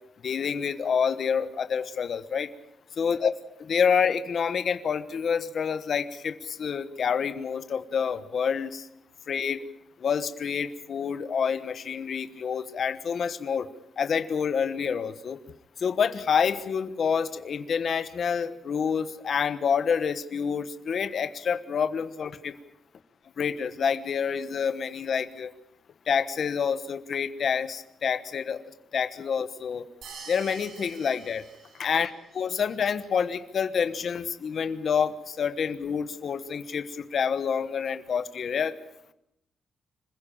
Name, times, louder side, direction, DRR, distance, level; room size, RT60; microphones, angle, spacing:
voice 1, 0.2-2.5 3.0-3.3 3.6-8.9 9.3-9.6 10.0-13.7 14.0-15.4 15.8-22.5 23.4-25.5 26.1-28.6 28.9-29.8 30.3-31.4 31.8-38.8, left 6 dB, 45° left, 11 dB, 1.2 m, -28 dB
sound 1, 30.0-32.3, right 5 dB, 80° right, 5.7 m, -46 dB
26.5 x 15.5 x 8.8 m, 0.80 s
wide cardioid pair, 170°, 0 cm